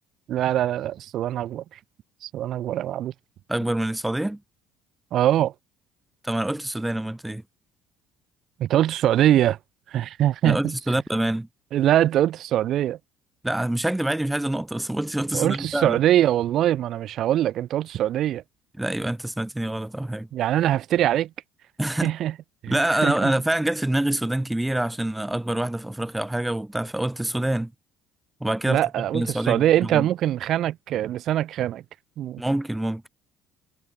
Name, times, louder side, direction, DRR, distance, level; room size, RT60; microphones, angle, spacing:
voice 1, 0.3-1.8 2.2-3.1 5.1-5.5 8.6-9.6 9.9-10.7 11.7-13.0 15.3-18.4 20.3-21.3 22.0-22.3 22.6-23.3 28.7-31.8 32.2-32.4, right 12 dB, 60° right, 2.2 m, -23 dB
voice 2, 3.5-4.4 6.2-7.4 10.4-11.5 13.4-16.0 18.8-20.3 21.8-22.1 22.7-27.7 28.4-30.1 32.4-33.0, right 1 dB, 5° right, 1.3 m, -26 dB
cardioid pair, 105°, 0 cm